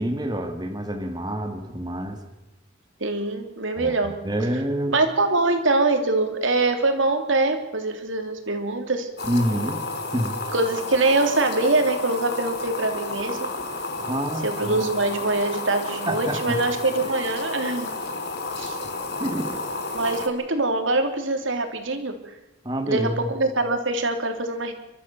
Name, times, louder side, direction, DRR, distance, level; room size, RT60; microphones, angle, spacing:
voice 1, 0.0-2.2 3.8-5.0 9.2-9.8 10.1-10.3 14.1-14.8 16.1-16.6 17.0-17.1 19.2-19.6 22.6-23.3, equal, 20° right, 4 dB, 2.0 m, -27 dB
voice 2, 3.0-4.2 4.9-9.1 10.5-13.5 14.4-17.9 18.6-18.8 19.9-22.2 22.9-23.1 23.3-24.7, right 2 dB, 90° right, 6 dB, 3.1 m, -23 dB
sound 1, 9.2-20.3, left 2 dB, 55° left, 2.4 m, -31 dB
29.5 x 13.5 x 7.0 m, 0.97 s
head